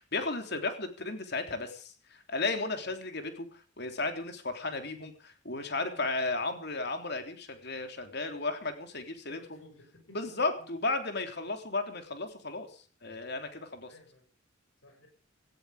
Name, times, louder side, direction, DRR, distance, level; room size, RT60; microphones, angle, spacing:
voice 1, 0.0-9.4 10.1-13.9, left 3 dB, 55° left, 6 dB, 3.5 m, -34 dB
voice 2, 9.2-10.7 13.9-14.3 14.8-15.1, left 1 dB, 75° left, 4 dB, 6.3 m, -56 dB
18.0 x 14.5 x 5.0 m, 0.40 s
head